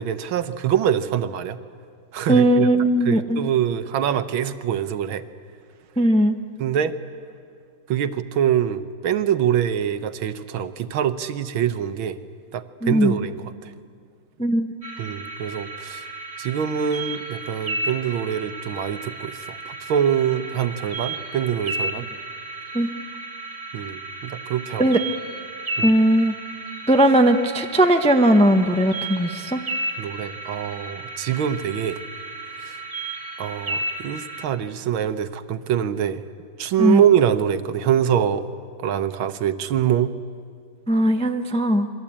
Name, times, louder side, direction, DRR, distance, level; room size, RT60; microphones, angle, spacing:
voice 1, 0.0-1.6 2.1-2.7 3.0-5.2 6.6-6.9 7.9-12.2 12.5-13.7 15.0-16.1 16.4-22.1 23.7-24.9 25.8-25.9 30.0-32.0 32.6-32.8 33.4-36.2 36.6-38.4 38.8-40.1, right 9 dB, 80° right, 11 dB, 1.8 m, -24 dB
voice 2, 2.3-3.5 6.0-6.4 12.8-13.2 14.4-14.7 22.7-22.9 24.8-25.0 25.8-26.3 26.9-29.6 36.8-37.0 40.9-41.9, right 1 dB, 5° left, 6 dB, 0.4 m, -18 dB
sound 1, 14.8-34.5, right 2 dB, 15° right, 1.9 m, -33 dB
28.5 x 23.0 x 8.7 m, 2.2 s
omnidirectional pair, 2.2 m